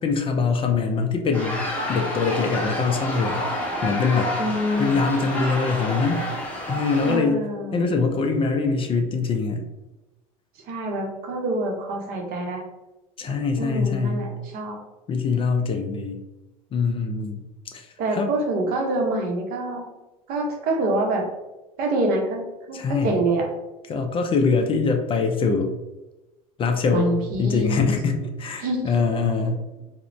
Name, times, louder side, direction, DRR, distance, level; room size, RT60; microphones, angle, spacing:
voice 1, 0.0-1.6 1.9-3.4 3.8-4.4 4.8-6.2 6.7-7.4 7.7-9.6 13.2-14.2 15.1-16.2 16.7-17.4 17.7-18.3 22.7-23.2 23.9-25.7 26.6-29.6, left 4 dB, 30° left, 5 dB, 0.3 m, -23 dB
sound 1, 1.3-7.2, left 1 dB, 10° left, 0.9 m, -29 dB
voice 2, 4.4-5.0 7.0-7.9 10.7-12.6 13.3-14.8 18.0-19.8 20.3-21.3 21.8-23.5 26.9-27.9 28.6-28.9 29.4-29.5, right 2 dB, 55° right, 1 dB, 0.7 m, -26 dB
2.4 x 2.1 x 3.0 m, 1.0 s
hypercardioid pair, 85°, 19 cm